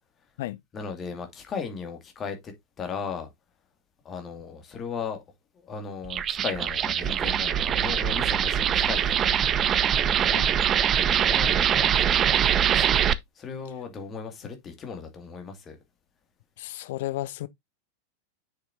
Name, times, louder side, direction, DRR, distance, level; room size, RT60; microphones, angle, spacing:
voice 1, 0.7-3.3 4.0-5.2 5.6-9.4 9.7-10.1 11.0-13.1 13.4-15.8, left 6 dB, 25° left, 2.2 m, -37 dB
sound 1, 6.0-13.1, right 9 dB, 25° right, 0.5 m, -23 dB
voice 2, 16.6-17.5, left 15 dB, 55° left, 0.6 m, -33 dB
7.3 x 6.3 x 2.6 m
figure-of-eight pair, 90°, 0 cm